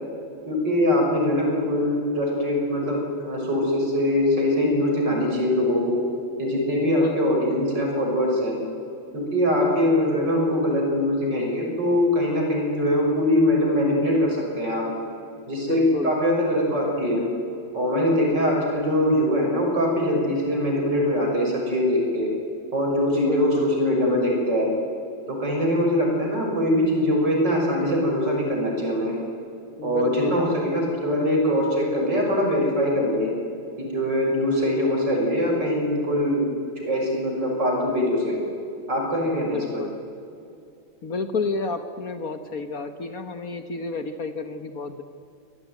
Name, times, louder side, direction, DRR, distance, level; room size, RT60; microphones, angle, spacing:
voice 1, 0.5-6.0 6.4-8.6 9.1-14.8 15.5-17.2 17.7-22.3 22.7-24.7 25.3-29.2 29.8-33.3 33.8-36.5 36.8-38.4 38.9-39.6, left 1 dB, 65° right, 0 dB, 7.1 m, -22 dB
voice 2, 7.0-7.5 15.6-16.1 23.1-23.7 29.8-30.4 39.5-39.9 41.0-45.0, left 4 dB, 50° left, 9 dB, 1.5 m, -30 dB
26.0 x 18.0 x 9.5 m, 2.6 s
omnidirectional pair, 2.1 m